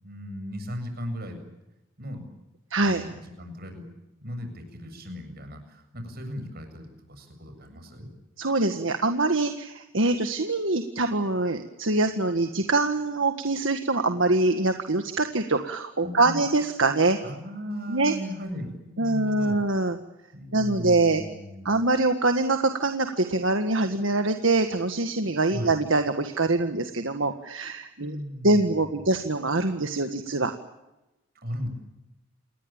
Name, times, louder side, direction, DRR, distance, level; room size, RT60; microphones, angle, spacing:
voice 1, 0.0-1.4 2.0-2.3 2.8-3.8 4.2-8.1 16.0-16.4 17.2-19.6 20.3-21.7 25.5-25.7 28.0-29.0 31.4-31.7, equal, 50° right, 6 dB, 7.5 m, -37 dB
voice 2, 2.7-3.0 8.4-17.2 17.9-18.1 19.0-20.0 20.5-21.2 21.6-28.2 28.4-30.5, right 2 dB, 65° right, 6 dB, 1.7 m, -24 dB
28.5 x 20.5 x 8.9 m, 0.99 s
head